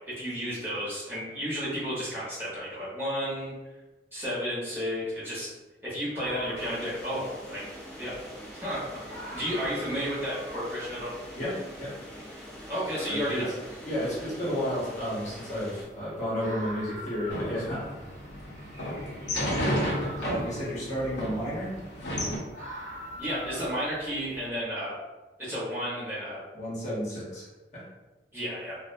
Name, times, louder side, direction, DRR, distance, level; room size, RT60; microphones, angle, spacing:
voice 1, 0.2-3.6 4.1-5.5 5.8-7.6 8.0-8.2 8.5-9.0 9.3-11.1 12.7-13.5 23.2-25.0 25.4-26.4 28.3-28.8, equal, 15° right, -10 dB, 0.8 m, -32 dB
sound 1, 6.1-24.5, equal, 45° right, 0.5 m, -46 dB
sound 2, 6.6-15.8, equal, 5° left, 0.4 m, -44 dB
voice 2, 11.4-11.9 13.0-13.4 13.8-17.9 20.2-21.8 26.5-27.5 27.7-27.8, equal, 40° left, -8 dB, 0.8 m, -32 dB
sound 3, 17.3-22.4, equal, 75° left, 0.6 m, -32 dB
2.4 x 2.0 x 2.5 m, 1.1 s
head